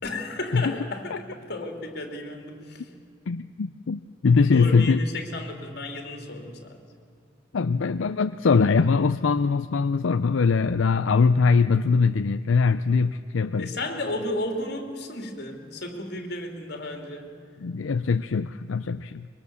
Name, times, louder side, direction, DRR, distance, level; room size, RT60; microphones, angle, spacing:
voice 1, 0.0-3.1 3.4-3.6 4.5-6.8 13.6-17.3, left 1 dB, 55° left, 4 dB, 3.1 m, -33 dB
voice 2, 3.3-5.0 7.5-13.7 17.6-19.3, left 4 dB, 80° left, 11 dB, 0.5 m, -22 dB
24.0 x 22.5 x 7.1 m, 2.4 s
head